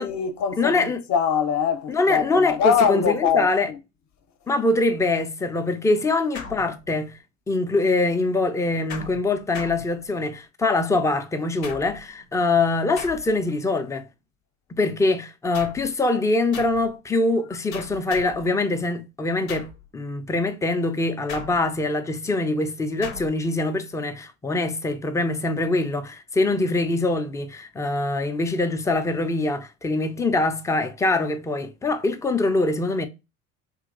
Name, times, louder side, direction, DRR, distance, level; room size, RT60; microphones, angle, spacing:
voice 1, 0.0-3.8, left 7 dB, 40° left, 0.7 m, -23 dB
voice 2, 0.6-1.0 1.9-3.7 4.5-7.2 7.5-14.1 14.7-19.7 19.9-33.1, left 2 dB, 10° left, 0.4 m, -23 dB
sound 1, 6.3-7.2 8.9-10.4 11.6-12.2 13.0-13.6 15.5-16.0 16.5-16.9 17.7-18.5 19.5-19.9 21.3-21.9 23.0-23.4, left 5 dB, 90° left, 0.7 m, -39 dB
3.0 x 2.8 x 2.5 m
hypercardioid pair, 70°, 40 cm